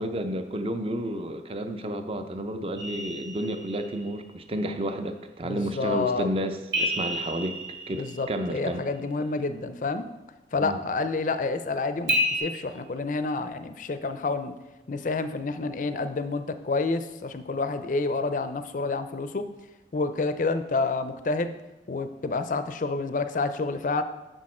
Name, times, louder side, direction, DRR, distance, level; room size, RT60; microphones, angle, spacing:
voice 1, 0.0-7.6 7.9-8.8 10.6-10.8 12.8-12.9 15.9-16.1, right 1 dB, 30° right, 8 dB, 0.5 m, -31 dB
sound 1, 2.8-4.1 6.7-8.7 12.1-12.4, left 1 dB, 75° right, 2.3 m, -30 dB
voice 2, 5.4-6.3 7.9-10.1 10.5-14.6 14.9-19.5 19.9-21.5 21.9-24.0, left 3 dB, 45° left, 10 dB, 0.4 m, -29 dB
6.5 x 6.3 x 4.3 m, 1.0 s
head